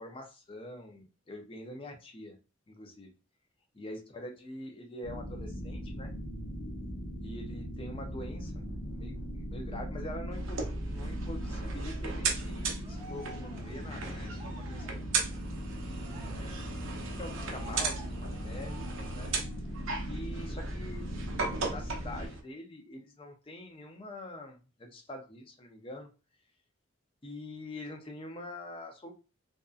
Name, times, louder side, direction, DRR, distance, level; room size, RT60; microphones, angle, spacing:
voice 1, 0.0-2.4 2.7-3.1 3.7-6.1 7.2-8.5 8.9-15.1 15.9-16.6 17.2-19.3 20.1-21.1 21.5-26.1 27.2-29.1, left 1 dB, 25° left, 4 dB, 0.4 m, -45 dB
sound 1, 5.0-22.3, equal, 60° left, 0.9 m, -39 dB
sound 2, 10.3-22.4, right 4 dB, 70° right, 0.5 m, -38 dB
Cheering, 11.7-19.7 20.1-20.3 20.6-21.6, right 2 dB, 25° right, 0.7 m, -53 dB
2.6 x 2.4 x 2.3 m, 0.32 s
head